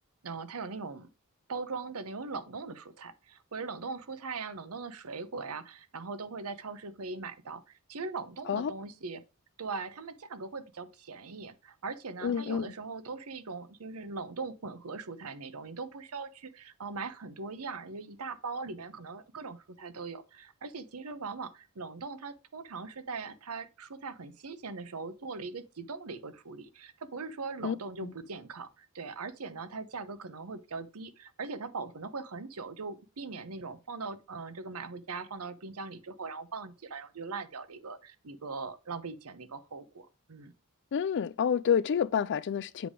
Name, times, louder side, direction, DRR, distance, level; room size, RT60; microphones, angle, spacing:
voice 1, 0.2-1.1 1.5-9.2 9.6-40.5, right 4 dB, 75° right, 0.8 m, -40 dB
voice 2, 12.2-12.7 27.6-27.8 28.0-28.1 40.9-42.9, left 7 dB, 55° left, 0.4 m, -28 dB
7.7 x 3.5 x 4.9 m
head